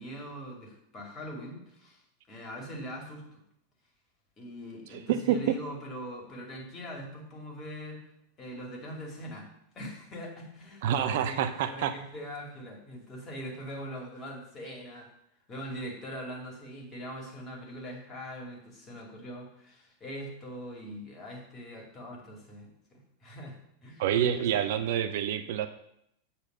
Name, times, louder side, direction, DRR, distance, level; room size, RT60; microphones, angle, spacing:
voice 1, 0.0-2.0 2.3-3.4 4.4-8.1 8.4-9.5 9.7-15.1 15.5-24.9, equal, 25° left, 0 dB, 2.5 m, -42 dB
voice 2, 4.9-5.4 10.8-11.9 24.0-25.7, right 10 dB, 50° right, 10 dB, 0.5 m, -27 dB
8.0 x 4.2 x 6.8 m, 0.75 s
figure-of-eight pair, 90°, 0 cm